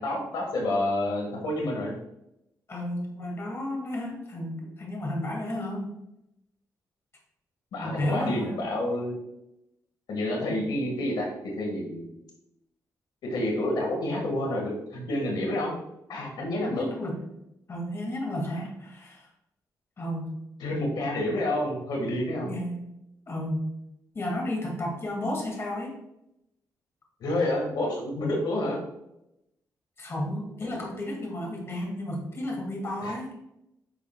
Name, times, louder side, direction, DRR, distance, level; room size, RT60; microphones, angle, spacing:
voice 1, 0.0-1.9 7.7-9.1 10.1-11.3 11.6-12.1 13.3-15.8 16.1-16.9 18.5-18.6 20.6-22.5 27.2-28.8 30.6-30.8 33.0-33.1, left 1 dB, 85° left, 0 dB, 1.9 m, -29 dB
voice 2, 2.7-5.9 7.8-8.6 16.6-17.2 17.7-19.3 20.0-20.3 22.4-22.8 23.3-23.7 24.1-26.0 30.0-33.3, left 1 dB, 40° left, -1 dB, 2.4 m, -32 dB
10.0 x 5.8 x 2.4 m, 0.84 s
cardioid pair, 105°, 7 cm